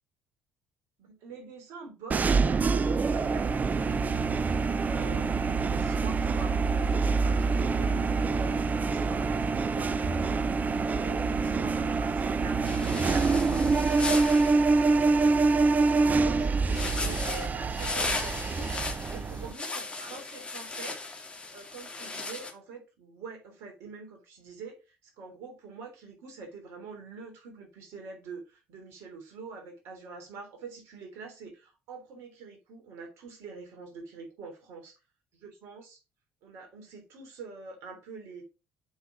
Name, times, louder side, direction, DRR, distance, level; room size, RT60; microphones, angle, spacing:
voice 1, 1.0-4.2 4.5-10.5 10.7-15.6 15.9-34.9 35.4-36.0 36.4-38.4, right 4 dB, 60° right, 3.4 m, -45 dB
sound 1, 2.1-19.5, right 4 dB, 30° right, 0.7 m, -26 dB
sound 2, 12.6-14.6 16.7-22.5, left 3 dB, 20° left, 2.1 m, -36 dB
7.1 x 5.9 x 4.9 m
figure-of-eight pair, 50°, 5 cm